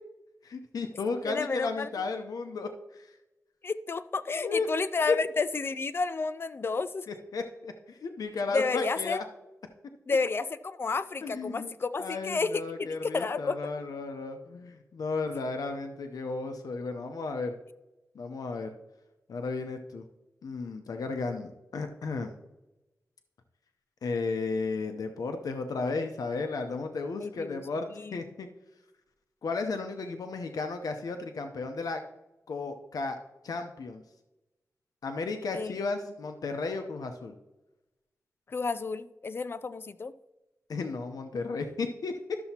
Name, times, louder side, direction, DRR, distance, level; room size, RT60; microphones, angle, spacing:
voice 1, 0.4-3.2 4.4-4.7 5.1-5.2 7.1-9.2 11.2-11.7 12.0-17.6 18.1-18.7 19.3-20.0 20.4-22.3 24.0-28.5 29.4-32.0 32.5-33.2 33.4-34.0 35.0-37.4 40.7-42.4, left 4 dB, 90° left, 6 dB, 0.7 m, -34 dB
voice 2, 1.3-1.9 3.6-7.1 8.5-9.2 10.1-13.6 27.2-27.6 28.0-28.2 35.5-35.7 38.5-40.1, left 4 dB, 40° left, 14 dB, 0.4 m, -31 dB
12.5 x 6.9 x 2.9 m, 0.99 s
wide cardioid pair, 170°, 6 cm